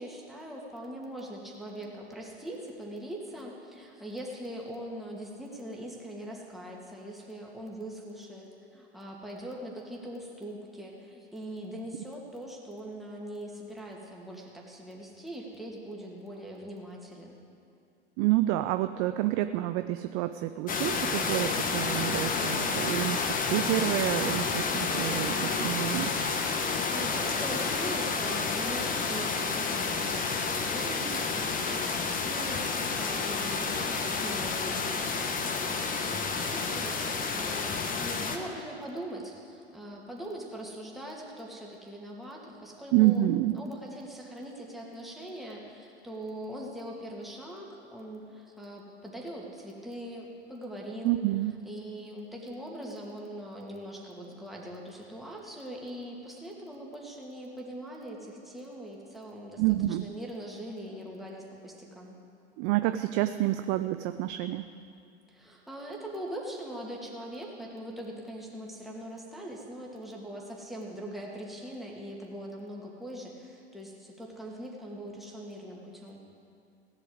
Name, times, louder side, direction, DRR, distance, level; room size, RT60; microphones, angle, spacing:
voice 1, 0.0-17.4 26.9-35.2 35.5-43.3 43.5-51.2 51.6-59.6 59.9-62.2 65.3-76.2, right 1 dB, ahead, -3 dB, 2.4 m, -41 dB
voice 2, 18.2-23.2 23.5-26.1 42.9-43.6 51.0-51.6 59.6-60.1 62.6-64.6, right 15 dB, 40° right, 10 dB, 0.5 m, -28 dB
sound 1, 20.7-38.4, left 4 dB, 25° left, 1.4 m, -30 dB
16.5 x 8.3 x 8.0 m, 2.5 s
figure-of-eight pair, 90°, 34 cm